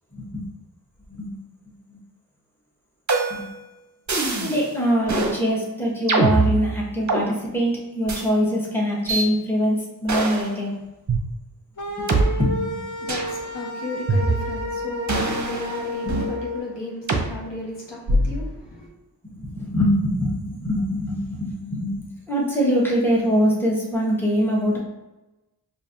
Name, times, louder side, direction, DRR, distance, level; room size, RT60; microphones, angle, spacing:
voice 1, 0.1-0.4 1.2-1.3 3.3-3.5 4.4-10.8 12.3-12.6 19.4-24.8, equal, 5° left, -4 dB, 1.0 m, -23 dB
sound 1, 3.1-3.6 4.1-4.6 5.1-5.4 6.1-7.2 8.1-8.2 9.1-9.3 10.1-10.5 11.1-11.2 12.1-12.2 13.1-13.3 14.1-14.7 15.1-16.3 17.1-17.3 18.1-18.5, right 3 dB, 45° right, 0.7 m, -23 dB
sound 2, 11.8-16.6, left 2 dB, 45° left, 0.6 m, -31 dB
voice 2, 12.9-18.9, left 2 dB, 75° left, -2 dB, 1.0 m, -35 dB
5.0 x 2.5 x 2.6 m, 1.0 s
wide cardioid pair, 55°, 42 cm